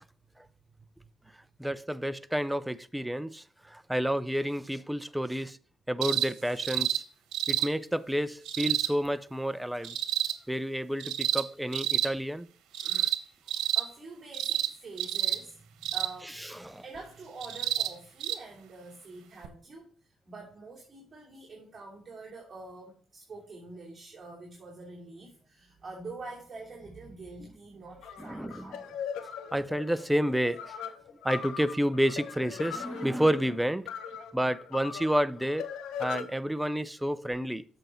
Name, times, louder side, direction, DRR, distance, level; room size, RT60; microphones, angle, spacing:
voice 1, 1.6-5.6 5.9-7.0 7.5-10.0 10.5-12.5 12.9-13.1 16.4-16.8 28.2-28.7 29.5-30.8 31.2-33.9 34.3-35.7 36.0-37.7, equal, 5° right, 0.5 m, -30 dB
sound 1, 6.0-6.3 6.6-7.0 7.3-7.7 8.5-8.9 9.8-10.3 11.0-11.4 11.7-12.1 12.7-13.2 13.5-13.8 14.3-14.7 15.0-15.4 15.8-16.1 17.4-17.9 18.2-18.4 19.4-19.5, right 13 dB, 85° right, 1.0 m, -29 dB
voice 2, 13.7-16.5 16.8-29.0, right 3 dB, 35° right, 2.8 m, -46 dB
sound 2, 28.0-36.2, left 7 dB, 90° left, 1.0 m, -40 dB
7.9 x 6.7 x 4.4 m
cardioid pair, 90°, 0 cm